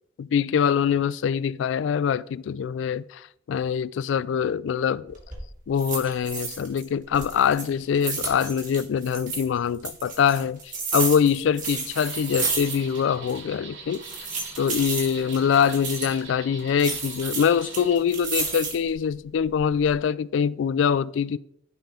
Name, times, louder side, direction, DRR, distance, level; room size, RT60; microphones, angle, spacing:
voice 1, 0.2-5.2 5.7-14.0 14.6-21.4, left 7 dB, 70° left, 0.3 m, -24 dB
sound 1, 5.1-5.4 5.8-6.8 7.1-9.4 9.8-13.0 13.3-13.4 13.9-16.2 16.8-18.9 19.4-19.9, right 4 dB, 45° right, 2.0 m, -32 dB
sound 2, 11.9-18.0, right 4 dB, 70° right, 1.6 m, -43 dB
10.5 x 4.8 x 3.8 m
head